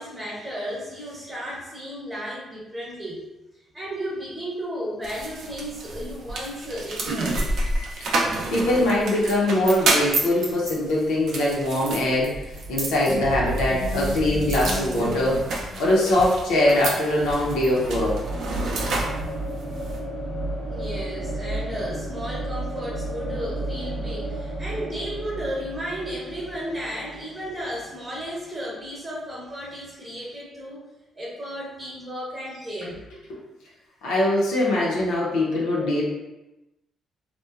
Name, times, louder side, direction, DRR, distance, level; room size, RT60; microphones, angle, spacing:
voice 1, 0.0-3.2 3.7-7.4 20.6-30.8 31.1-33.0, equal, 15° right, -6 dB, 0.9 m, -34 dB
sound 1, 5.0-20.0, right 2 dB, 70° right, 0.5 m, -30 dB
voice 2, 8.5-12.3 12.7-18.2 34.0-36.0, left 1 dB, 90° left, -4 dB, 0.6 m, -22 dB
sound 2, 12.3-19.3, equal, 30° left, 0.4 m, -33 dB
sound 3, 17.2-29.0, right 1 dB, 90° right, 0.8 m, -33 dB
2.9 x 2.1 x 2.3 m, 1.0 s
cardioid pair, 90°, 0 cm